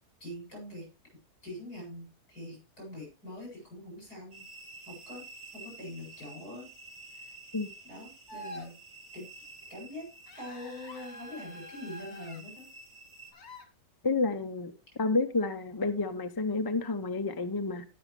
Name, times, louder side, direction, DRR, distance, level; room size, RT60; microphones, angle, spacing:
voice 1, 0.2-0.9 1.4-4.4 4.8-6.7 7.1-7.3 7.8-8.7 9.1-9.3 9.7-10.1 10.4-12.7, left 1 dB, 70° left, 8.4 m, -44 dB
sound 1, 4.3-13.3, right 3 dB, 75° right, 2.9 m, -51 dB
sound 2, 8.3-8.7 10.3-12.4 13.3-13.7, left 1 dB, 45° left, 1.5 m, -46 dB
voice 2, 14.0-14.7 15.0-17.8, left 3 dB, 25° left, 0.5 m, -30 dB
18.5 x 6.3 x 3.2 m
omnidirectional pair, 1.7 m